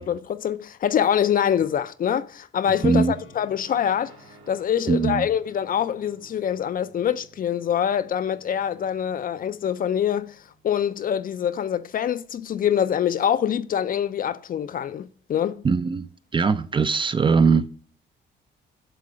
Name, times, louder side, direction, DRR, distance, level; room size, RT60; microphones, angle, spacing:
voice 1, 0.0-4.2 4.5-10.4 10.6-15.6, left 9 dB, 45° left, 0.4 m, -25 dB
Strum, 2.6-6.7, left 6 dB, 75° left, 0.8 m, -48 dB
voice 2, 2.8-3.2 4.9-5.3 15.6-17.7, right 5 dB, 25° right, 0.3 m, -21 dB
sound 1, 3.7-11.5, right 3 dB, 75° right, 2.0 m, -54 dB
7.7 x 3.3 x 4.9 m
cardioid pair, 90°, 20 cm